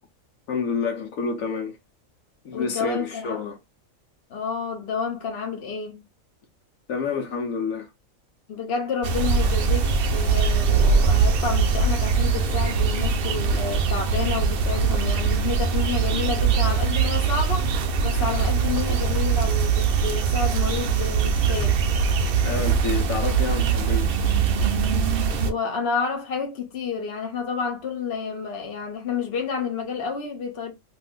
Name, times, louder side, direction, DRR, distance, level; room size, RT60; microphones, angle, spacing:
voice 1, 0.5-1.8 2.4-3.6 6.9-7.9 22.4-24.1, left 5 dB, 75° left, 1.1 m, -28 dB
voice 2, 2.5-3.4 4.3-6.0 8.5-17.7 18.0-21.8 25.4-30.7, left 5 dB, 50° left, 1.0 m, -30 dB
sound 1, 9.0-25.5, right 5 dB, 65° right, 0.5 m, -22 dB
2.6 x 2.6 x 3.5 m
omnidirectional pair, 1.4 m